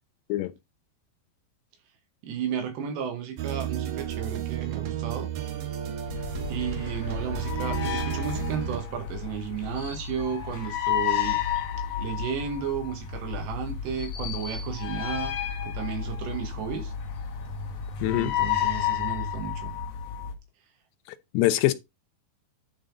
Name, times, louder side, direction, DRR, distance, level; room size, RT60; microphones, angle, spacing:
voice 1, 2.2-5.3 6.5-11.4 12.0-16.9 18.1-19.8, right 8 dB, 85° right, 4.1 m, -33 dB
sound 1, 3.4-8.8, right 11 dB, 65° right, 2.6 m, -32 dB
sound 2, 6.0-20.3, left 9 dB, 60° left, 1.9 m, -31 dB
voice 2, 18.0-18.3 21.3-21.7, left 15 dB, 90° left, 2.9 m, -23 dB
10.0 x 5.4 x 3.9 m
omnidirectional pair, 4.8 m